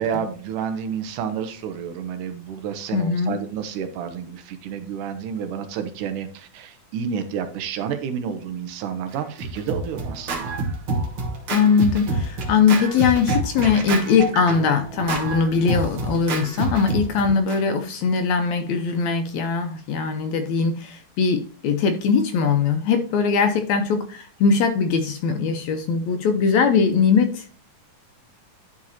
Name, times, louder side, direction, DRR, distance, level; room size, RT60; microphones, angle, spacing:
voice 1, 0.0-10.5 17.3-17.4, right 7 dB, 85° right, 8 dB, 2.3 m, -30 dB
voice 2, 2.9-3.4 11.5-27.5, left 5 dB, 80° left, 7 dB, 1.7 m, -21 dB
Scratching (performance technique), 9.1-17.6, right 3 dB, 55° right, 1.7 m, -28 dB
10.5 x 4.9 x 2.8 m, 0.42 s
omnidirectional pair, 3.6 m